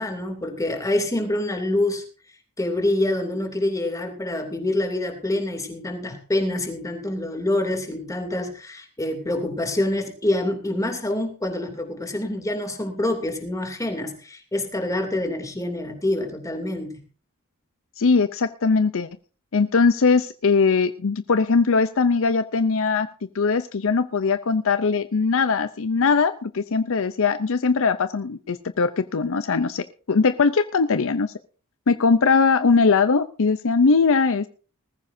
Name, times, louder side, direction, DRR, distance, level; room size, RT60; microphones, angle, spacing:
voice 1, 0.0-2.0 2.6-17.0, left 1 dB, 15° left, 4 dB, 2.8 m, -26 dB
voice 2, 18.0-19.1 19.5-23.1 23.3-31.3 31.9-34.5, left 4 dB, 65° left, 12 dB, 0.6 m, -20 dB
19.5 x 14.5 x 2.7 m, 0.38 s
head